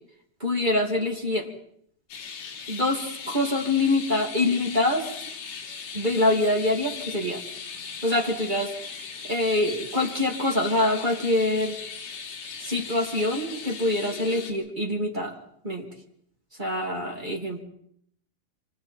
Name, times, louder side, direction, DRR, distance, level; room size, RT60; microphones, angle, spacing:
voice 1, 0.4-1.5 2.7-5.0 5.9-7.4 8.0-8.7 9.3-11.8 12.6-15.3 15.6-15.8 16.6-17.6, left 2 dB, 30° right, 1 dB, 0.8 m, -25 dB
Million Birds making noise, 2.1-14.5, left 6 dB, 75° left, 5.9 m, -38 dB
28.0 x 26.0 x 4.4 m, 0.69 s
omnidirectional pair, 5.6 m